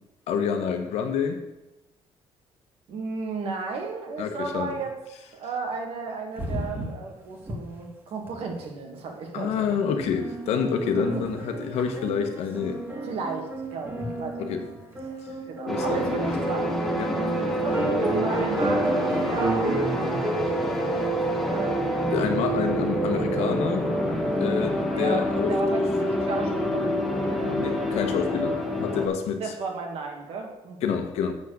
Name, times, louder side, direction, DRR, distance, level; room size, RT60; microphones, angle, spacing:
voice 1, 0.3-1.4 4.2-4.8 9.3-12.8 14.4-14.6 15.7-16.0 17.0-17.2 22.1-23.9 24.4-25.8 27.4-29.4 30.8-31.3, left 7 dB, 85° left, 6 dB, 1.1 m, -28 dB
voice 2, 2.9-5.0 5.3-9.7 10.9-11.2 13.0-14.6 15.0-15.2 15.4-16.7 17.1-19.7 20.6-21.2 21.4-21.8 24.9-27.4 29.4-30.9, right 4 dB, 65° right, 2 dB, 1.9 m, -34 dB
sound 1, 6.4-7.1 7.4-7.6 7.9-8.0 8.2-8.6 9.6-9.7 10.0-16.4 17.0-17.1 17.7-20.6, right 1 dB, 20° right, 1.8 m, -31 dB
sound 2, 15.7-29.1, equal, 5° left, 1.3 m, -26 dB
7.5 x 6.0 x 6.5 m, 0.98 s
cardioid pair, 145°, 11 cm